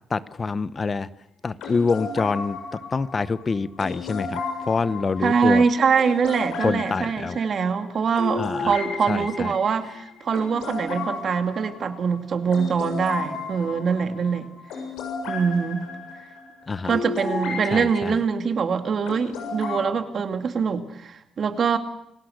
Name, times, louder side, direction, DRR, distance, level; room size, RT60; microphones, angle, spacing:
voice 1, 0.1-1.1 1.4-2.6 2.9-4.4 4.7-5.6 6.6-7.4 8.4-8.7 9.1-9.5 16.7-17.0 17.7-18.2, left 4 dB, 35° left, 0.9 m, -26 dB
sound 1, 1.6-18.0 19.1-19.8, left 4 dB, 90° left, 7.3 m, -34 dB
voice 2, 5.2-14.5 15.3-15.9 16.8-21.8, right 5 dB, 50° right, 2.3 m, -23 dB
28.5 x 18.5 x 6.6 m
cardioid pair, 90°, 0 cm